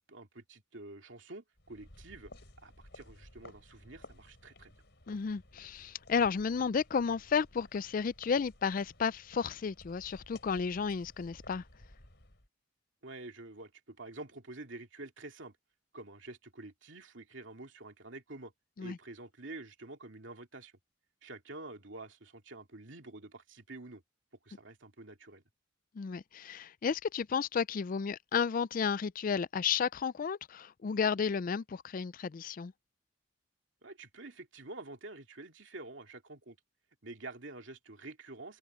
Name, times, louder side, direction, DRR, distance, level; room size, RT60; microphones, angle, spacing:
voice 1, 0.0-2.3 2.6-4.7 13.0-15.6 15.9-18.5 18.8-20.7 21.2-24.0 24.4-25.4 33.8-36.6 37.0-38.6, right 2 dB, 75° right, 2.6 m, -48 dB
sound 1, 1.6-12.5, left 2 dB, 60° left, 5.3 m, -56 dB
voice 2, 5.1-11.6 18.8-19.0 26.0-32.7, left 6 dB, 45° left, 0.4 m, -32 dB
head